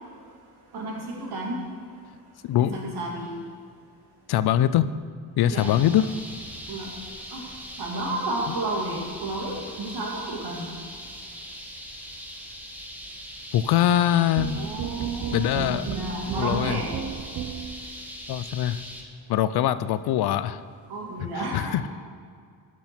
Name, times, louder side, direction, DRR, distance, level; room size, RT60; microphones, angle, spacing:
voice 1, 0.7-1.6 2.6-3.3 5.4-5.8 6.7-6.9 7.3-7.4 7.8-10.7 14.6-16.9 20.9-21.8, right 1 dB, 80° right, -1 dB, 2.0 m, -32 dB
voice 2, 2.4-2.8 4.3-4.9 5.4-6.1 8.5-8.6 13.5-14.6 15.3-15.9 16.4-16.8 18.3-18.8 19.3-20.6 21.2-21.9, left 11 dB, 75° left, 14 dB, 0.5 m, -23 dB
sound 1, 5.6-19.0, equal, 5° right, 1.3 m, -41 dB
sound 2, 14.4-17.9, right 8 dB, 55° right, 0.6 m, -33 dB
12.0 x 6.2 x 4.4 m, 2.1 s
cardioid pair, 80°, 38 cm